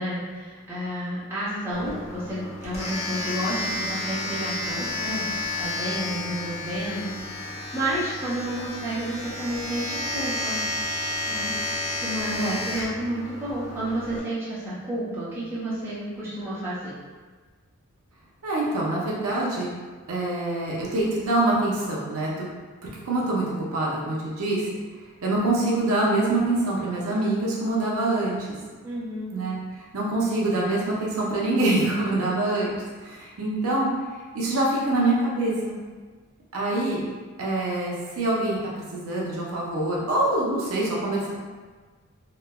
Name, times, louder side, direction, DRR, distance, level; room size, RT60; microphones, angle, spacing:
voice 1, 0.0-5.3 5.6-10.6 11.2-11.5 12.0-16.8 28.8-29.4, right 1 dB, 10° right, -12 dB, 0.7 m, -31 dB
Domestic sounds home sounds, 1.7-14.2, left 2 dB, 30° left, 0.3 m, -31 dB
voice 2, 18.4-19.7 20.1-22.5 22.8-24.7 25.2-28.5 29.3-29.6 29.9-33.9 34.3-35.8 36.5-37.1 37.4-41.3, right 2 dB, 75° right, -4 dB, 0.5 m, -25 dB
3.0 x 2.0 x 2.2 m, 1.4 s
head